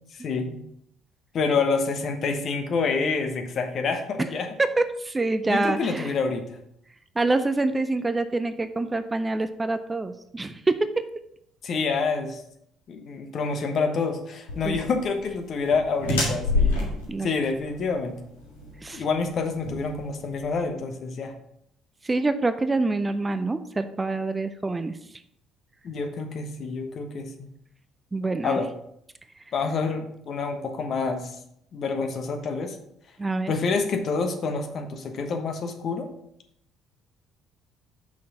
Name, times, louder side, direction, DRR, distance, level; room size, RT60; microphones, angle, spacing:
voice 1, 0.1-0.6 1.3-4.6 5.5-6.6 11.6-12.4 12.9-16.9 17.2-18.1 18.9-21.3 25.8-27.5 28.4-28.7 29.5-31.4 31.7-32.8 33.5-36.1, left 4 dB, 50° left, 5 dB, 1.1 m, -27 dB
voice 2, 4.6-6.1 7.2-11.1 14.6-14.8 17.1-17.3 18.8-19.0 22.0-24.9 28.1-28.6 33.2-33.5, right 2 dB, 20° right, 11 dB, 0.5 m, -26 dB
sound 1, 14.5-20.6, left 2 dB, 80° left, 1.7 m, -29 dB
6.3 x 5.8 x 4.2 m, 0.73 s
figure-of-eight pair, 50°, 0 cm